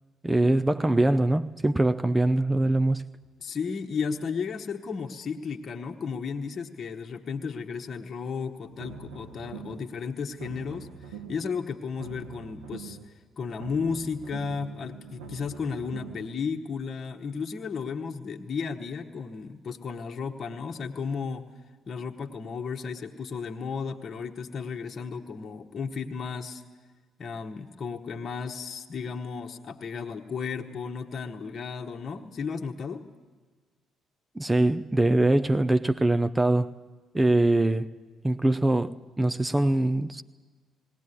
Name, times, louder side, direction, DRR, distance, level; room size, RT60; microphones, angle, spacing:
voice 1, 0.2-3.0 34.4-36.7 37.1-37.9 38.2-40.2, right 2 dB, 15° right, 0.6 m, -23 dB
voice 2, 3.4-10.9 11.3-13.0 13.4-21.5 21.9-26.6 27.2-33.0, left 5 dB, 40° left, 1.3 m, -34 dB
sound 1, 8.6-9.9 10.2-11.5 11.8-13.1 13.4-16.3, right 5 dB, 70° right, 1.8 m, -43 dB
19.5 x 17.5 x 9.7 m
figure-of-eight pair, 45°, 0 cm